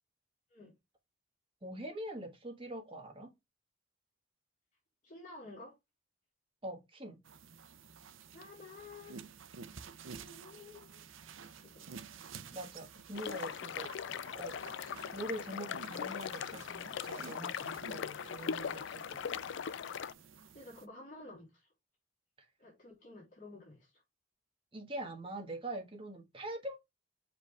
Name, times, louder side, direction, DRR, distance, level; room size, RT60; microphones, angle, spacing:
voice 1, 1.6-3.3 6.6-7.2 12.5-13.9 14.4-14.6 15.1-19.2 24.7-26.8, right 1 dB, 25° right, 1.7 m, -43 dB
voice 2, 5.0-5.8 8.3-9.3 9.9-11.1 11.5-11.9 20.3-21.7 22.6-24.0, left 2 dB, 40° left, 3.4 m, -52 dB
sound 1, 7.2-20.9, right 5 dB, 90° right, 0.7 m, -52 dB
sound 2, 13.1-20.1, left 7 dB, 65° left, 0.4 m, -40 dB
7.2 x 5.1 x 3.4 m
head